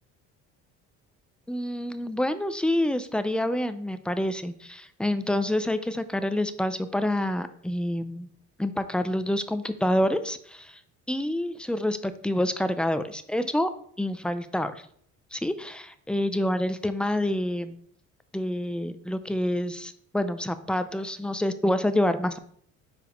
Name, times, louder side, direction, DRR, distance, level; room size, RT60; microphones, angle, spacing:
voice 1, 1.5-8.3 8.6-10.8 11.1-13.7 14.0-14.7 15.3-17.8 18.3-22.4, left 1 dB, 5° left, 11 dB, 0.4 m, -27 dB
4.9 x 4.8 x 5.1 m, 0.62 s
cardioid pair, 120°, 29 cm